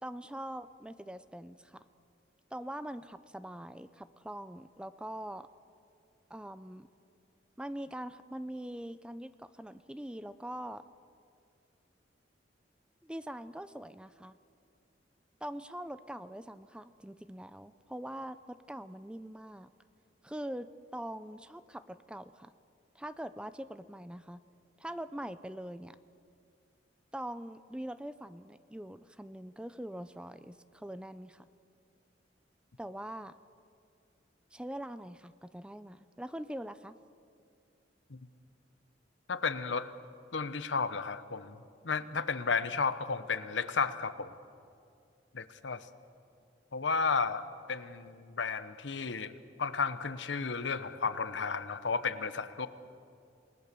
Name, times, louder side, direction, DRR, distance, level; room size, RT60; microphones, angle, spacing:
voice 1, 0.0-1.8 2.5-5.5 6.3-6.9 7.6-10.8 13.0-14.3 15.4-19.7 20.2-22.5 23.0-24.4 24.8-26.0 27.1-31.5 32.8-33.3 34.5-36.9, right 1 dB, 5° right, 13 dB, 0.5 m, -43 dB
voice 2, 39.3-39.9 40.3-41.6 41.8-44.3 45.3-45.8 46.7-52.7, left 5 dB, 75° left, 12 dB, 1.0 m, -33 dB
28.0 x 19.0 x 6.9 m, 2.4 s
head